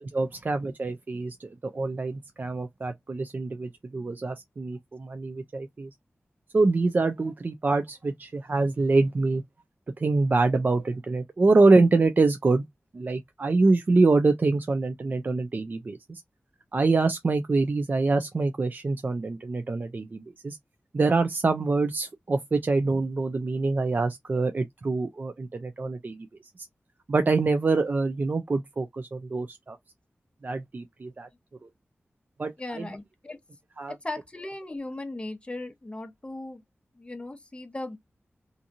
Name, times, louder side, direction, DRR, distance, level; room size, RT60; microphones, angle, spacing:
voice 1, 0.0-5.9 6.5-9.4 10.0-12.6 12.9-16.2 16.7-20.6 20.9-26.3 27.1-29.8 30.4-31.3 32.4-32.9 33.8-33.9, right 3 dB, 45° right, 0.3 m, -25 dB
voice 2, 32.6-33.4 33.9-36.6 36.9-38.0, left 2 dB, 25° left, 0.7 m, -37 dB
2.7 x 2.5 x 2.5 m
wide cardioid pair, 70°, 4 cm